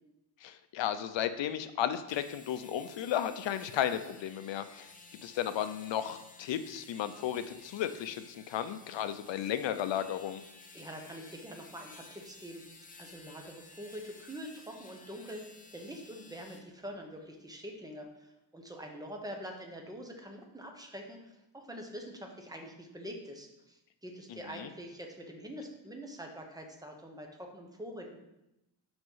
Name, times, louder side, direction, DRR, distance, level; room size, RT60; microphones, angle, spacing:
voice 1, 0.4-4.9 5.2-10.4 24.3-24.7, left 10 dB, 70° left, 11 dB, 0.6 m, -34 dB
sound 1, 1.9-16.6, left 3 dB, 20° left, 0.7 m, -54 dB
voice 2, 10.7-12.6 13.0-28.2, equal, 10° right, 2 dB, 0.9 m, -45 dB
6.0 x 5.2 x 5.6 m, 0.92 s
wide cardioid pair, 170°, 47 cm